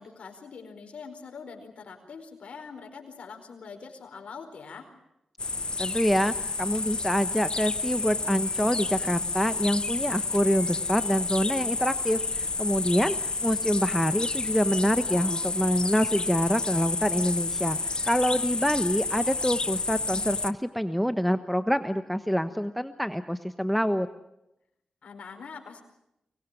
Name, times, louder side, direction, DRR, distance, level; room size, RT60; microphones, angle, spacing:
voice 1, 0.0-4.9 15.0-15.4 16.1-16.4 25.0-25.8, left 5 dB, 70° left, 3 dB, 4.8 m, -43 dB
sound 1, 5.4-20.5, left 3 dB, 40° left, 0.9 m, -30 dB
voice 2, 5.8-24.1, equal, ahead, 10 dB, 1.1 m, -26 dB
24.5 x 20.5 x 9.2 m, 0.87 s
cardioid pair, 55°, 2 cm